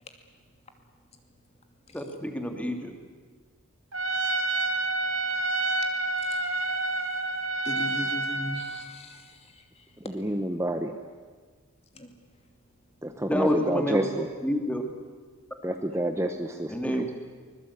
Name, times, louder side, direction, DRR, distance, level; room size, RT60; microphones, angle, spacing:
voice 1, 1.9-2.9 13.3-14.1 14.4-14.8 16.7-17.1, equal, 5° left, 4 dB, 2.3 m, -28 dB
Trumpet, 3.9-8.8, right 2 dB, 60° right, 2.5 m, -28 dB
voice 2, 6.2-6.5 7.6-10.2 11.9-12.1, left 1 dB, 30° left, 5 dB, 2.5 m, -39 dB
voice 3, 10.1-11.0 13.0-14.3 15.6-17.1, right 1 dB, 10° right, 6 dB, 0.9 m, -29 dB
24.0 x 21.5 x 8.5 m, 1.5 s
head